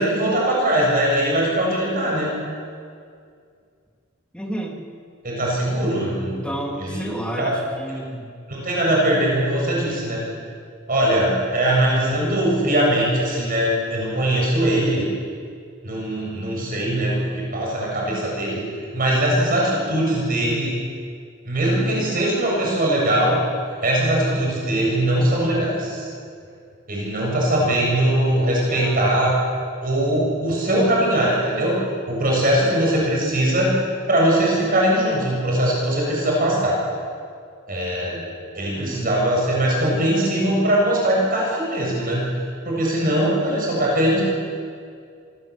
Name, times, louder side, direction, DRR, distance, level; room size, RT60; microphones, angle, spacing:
voice 1, 0.0-2.3 5.2-6.3 6.8-7.6 8.5-10.2 10.9-15.1 15.8-18.6 18.9-20.8 21.5-23.4 23.8-26.1 26.9-29.4 29.8-31.8 32.1-33.8 34.1-36.8 37.7-38.2 38.6-42.3 42.6-44.2, right 1 dB, 45° right, -3 dB, 7.4 m, -21 dB
voice 2, 4.3-4.8 6.3-8.3 11.7-12.1 28.7-29.0 38.7-39.1, right 1 dB, 5° left, -1 dB, 3.3 m, -31 dB
26.0 x 19.5 x 8.4 m, 2.2 s
head